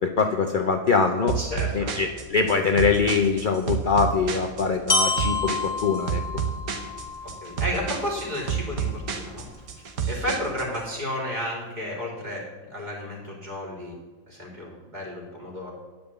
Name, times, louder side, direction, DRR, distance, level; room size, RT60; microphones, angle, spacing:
voice 1, 0.0-1.4 1.7-6.2, left 5 dB, 70° left, 4 dB, 0.4 m, -23 dB
sound 1, 1.3-10.8, right 7 dB, 70° right, 1.5 m, -30 dB
voice 2, 1.4-1.9 7.2-9.4 10.1-12.4 12.7-14.0 14.3-15.7, left 1 dB, 30° right, -3 dB, 3.0 m, -32 dB
Glockenspiel, 4.9-8.9, left 3 dB, 30° left, 1.6 m, -29 dB
10.5 x 5.2 x 7.9 m, 1.4 s
omnidirectional pair, 1.6 m